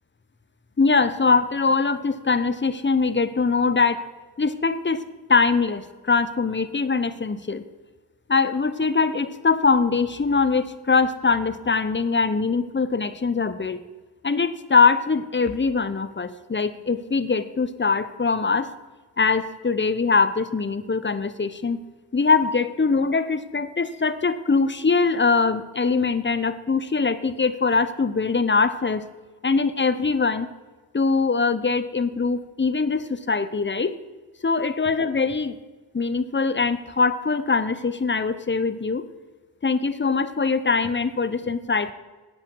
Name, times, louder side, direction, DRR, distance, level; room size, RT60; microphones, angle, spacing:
voice 1, 0.8-4.0 4.4-5.0 5.3-7.6 8.3-13.8 14.2-18.7 19.2-21.8 22.1-29.1 29.4-30.5 30.9-34.0 34.4-35.6 35.9-39.0 39.6-41.9, left 4 dB, 25° left, 13 dB, 1.0 m, -22 dB
13.0 x 8.4 x 4.8 m, 1.3 s
supercardioid pair, 45°, 45 cm